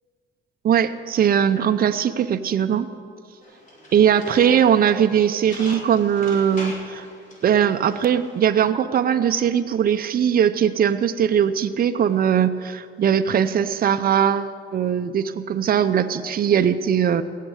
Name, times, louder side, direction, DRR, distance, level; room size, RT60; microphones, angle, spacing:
voice 1, 0.6-2.9 3.9-7.1 7.4-17.2, right 8 dB, 50° right, 9 dB, 0.7 m, -20 dB
sound 1, 3.4-8.4, right 1 dB, 40° left, 5.0 m, -38 dB
17.0 x 7.5 x 8.1 m, 2.1 s
cardioid pair, 90°, 20 cm